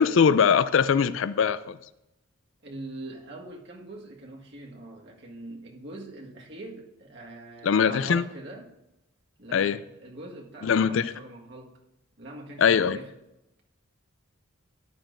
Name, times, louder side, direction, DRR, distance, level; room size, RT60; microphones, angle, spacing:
voice 1, 0.0-1.8 7.6-8.2 9.5-9.8 10.6-11.1 12.6-13.0, left 6 dB, 65° left, 0.4 m, -21 dB
voice 2, 2.6-8.7 9.4-11.7 12.2-13.1, right 2 dB, 55° right, 1.6 m, -42 dB
13.0 x 10.5 x 2.6 m
head